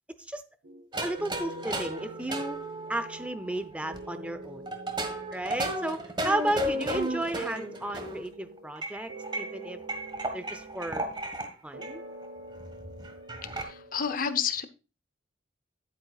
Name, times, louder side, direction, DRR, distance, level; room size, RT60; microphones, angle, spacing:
sound 1, 0.6-0.9 1.2-3.5 3.8-6.2 6.5-8.8 9.1-11.4 11.7-14.0, right 1 dB, 55° right, 1.1 m, -46 dB
sound 2, 0.9-4.0 4.7-8.3 8.8-11.5 11.8-12.0 12.2-12.3 12.6-13.6, right 1 dB, 25° right, 1.4 m, -34 dB
voice 1, 1.0-2.6 2.9-4.8 5.3-9.8 10.3-11.1 11.6-12.0, right 1 dB, 5° right, 11 dB, 0.6 m, -33 dB
voice 2, 13.4-14.6, left 7 dB, 45° left, 12 dB, 0.8 m, -30 dB
10.5 x 9.2 x 2.4 m, 0.31 s
head